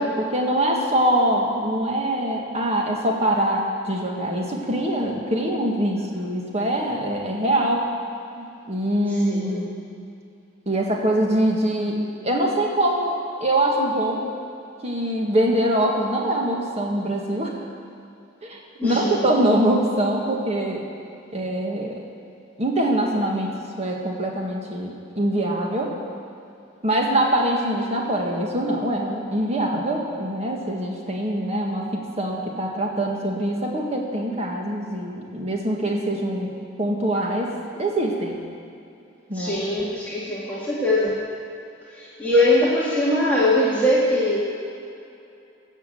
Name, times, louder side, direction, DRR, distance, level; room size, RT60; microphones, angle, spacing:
voice 1, 0.0-7.9 8.3-9.7 10.6-12.0 12.2-14.3 14.8-17.5 18.4-20.8 21.3-22.0 22.6-25.9 26.8-36.5 36.8-38.4 39.3-39.6, right 1 dB, 35° right, 0 dB, 1.8 m, -23 dB
voice 2, 9.1-9.7 18.8-19.2 39.3-41.2 41.9-44.4, left 1 dB, 10° left, -8 dB, 1.9 m, -21 dB
16.5 x 6.5 x 7.8 m, 2.7 s
head